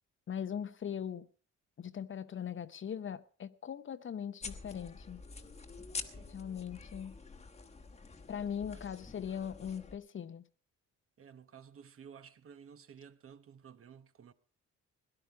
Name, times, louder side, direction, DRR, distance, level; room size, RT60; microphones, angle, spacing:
voice 1, 0.3-1.3 1.8-5.2 6.3-7.2 8.3-10.4, left 8 dB, 40° left, 0.7 m, -40 dB
sound 1, 4.4-10.0, left 4 dB, 20° left, 1.2 m, -47 dB
voice 2, 6.0-6.4 8.5-8.8 11.2-14.3, right 7 dB, 45° right, 1.0 m, -54 dB
17.5 x 11.0 x 4.8 m
cardioid pair, 90°, 30 cm